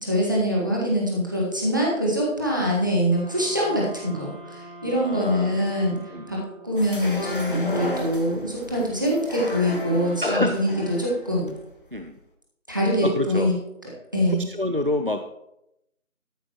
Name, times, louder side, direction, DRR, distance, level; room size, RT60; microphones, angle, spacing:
voice 1, 0.0-6.0 6.3-6.4 6.6-11.5 12.7-13.5 14.1-14.4, equal, 15° right, -4 dB, 1.5 m, -24 dB
sound 1, 3.1-7.0, right 1 dB, 15° left, 2.3 m, -44 dB
voice 2, 4.9-5.7 6.1-6.3 10.2-10.7 11.9-12.2 13.0-13.5 14.3-15.4, left 1 dB, 40° right, 8 dB, 0.5 m, -27 dB
sound 2, 6.8-12.0, left 1 dB, 40° left, 1.4 m, -33 dB
13.0 x 11.5 x 3.0 m, 0.83 s
figure-of-eight pair, 170°, 42 cm